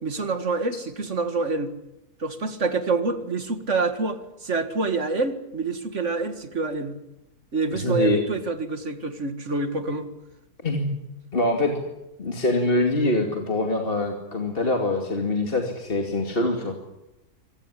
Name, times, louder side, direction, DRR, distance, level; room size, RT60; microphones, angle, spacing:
voice 1, 0.0-1.7 2.2-7.0 7.5-10.1, right 3 dB, 50° right, 9 dB, 2.2 m, -27 dB
voice 2, 7.7-8.2 10.6-10.9 11.3-11.7 12.2-16.8, left 2 dB, 35° left, 2 dB, 2.6 m, -24 dB
24.5 x 18.5 x 10.0 m, 0.93 s
omnidirectional pair, 1.6 m